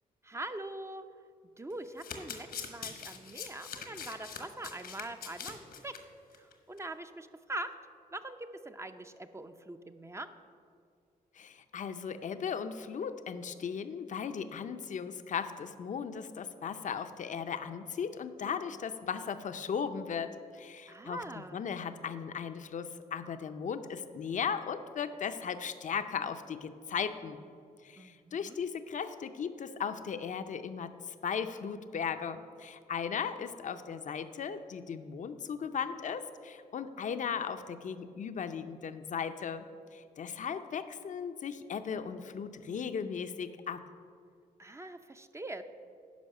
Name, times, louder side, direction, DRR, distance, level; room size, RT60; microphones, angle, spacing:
voice 1, 0.2-1.0 1.6-5.9 6.4-7.7 8.1-10.3 20.9-21.6 28.0-28.6 44.6-45.6, right 2 dB, 20° right, 8 dB, 0.6 m, -43 dB
Domestic sounds home sounds, 1.7-6.0 6.3-6.5 6.8-6.9, left 6 dB, 80° left, 1.2 m, -43 dB
voice 2, 11.3-27.4 27.8-39.7 39.9-43.8, left 7 dB, 55° left, 9 dB, 0.6 m, -37 dB
10.5 x 5.3 x 6.5 m, 2.3 s
cardioid pair, 70°, 16 cm